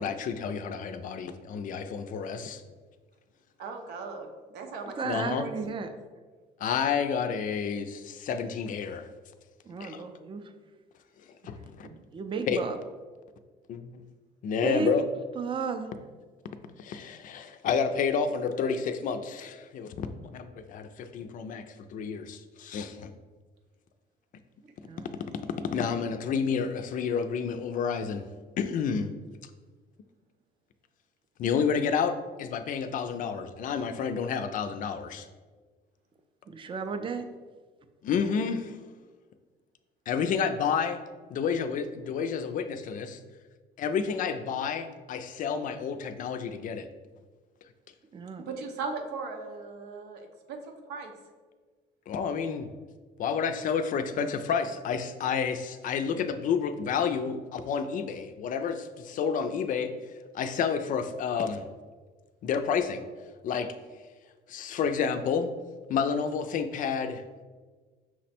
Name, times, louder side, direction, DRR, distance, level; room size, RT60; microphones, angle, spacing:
voice 1, 0.0-2.6 5.0-5.5 6.6-9.1 9.8-10.0 11.4-11.9 12.5-12.6 13.7-14.0 14.4-15.0 16.8-20.1 20.3-21.6 21.9-23.1 25.6-28.3 28.6-29.1 31.4-35.3 38.0-38.8 40.1-41.0 41.3-43.2 43.8-46.9 52.1-52.7 53.2-59.9 60.3-61.6 62.4-63.0 63.4-63.7 64.5-65.5 65.9-67.2, left 6 dB, 50° left, 9 dB, 0.4 m, -30 dB
voice 2, 3.6-5.0 5.3-5.8 48.4-50.6 50.9-51.1, right 4 dB, 85° right, 4 dB, 0.7 m, -38 dB
voice 3, 5.0-5.9 9.7-10.4 12.1-12.8 14.6-14.9 15.4-15.9 24.9-25.1 36.5-37.2 48.1-48.5, right 5 dB, 30° right, 7 dB, 0.4 m, -33 dB
5.9 x 2.1 x 4.2 m, 1.4 s
cardioid pair, 110°, 17 cm